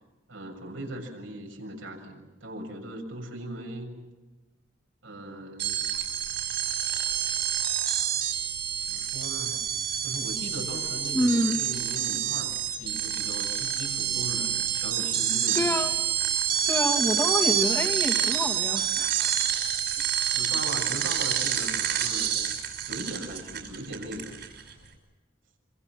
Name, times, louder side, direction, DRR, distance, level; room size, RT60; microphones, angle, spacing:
voice 1, 0.3-3.9 5.0-5.8 8.9-9.6 10.0-15.9 20.3-22.4 22.8-24.4, right 1 dB, 80° right, 1 dB, 6.9 m, -39 dB
sound 1, 5.6-24.7, right 9 dB, 60° right, 6.0 m, -28 dB
voice 2, 11.1-11.6 15.6-15.9 16.6-19.4, equal, 10° left, 3 dB, 2.3 m, -27 dB
27.0 x 26.0 x 7.6 m, 1.1 s
head